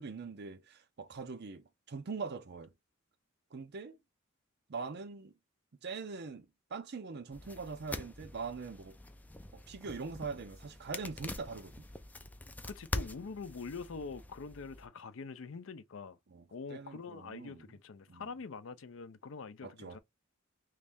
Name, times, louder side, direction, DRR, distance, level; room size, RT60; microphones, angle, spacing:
voice 1, 0.0-2.7 3.5-4.0 4.7-5.3 5.8-9.0 9.5-11.9 16.3-17.7 18.1-18.3 19.6-20.0, right 4 dB, 55° right, 0.6 m, -43 dB
Knife Cutting T-Shirt Cloth, 7.3-14.9, left 1 dB, 10° left, 0.4 m, -44 dB
voice 2, 12.7-16.2 16.5-20.0, left 4 dB, 70° left, 0.5 m, -44 dB
3.2 x 2.6 x 3.4 m
head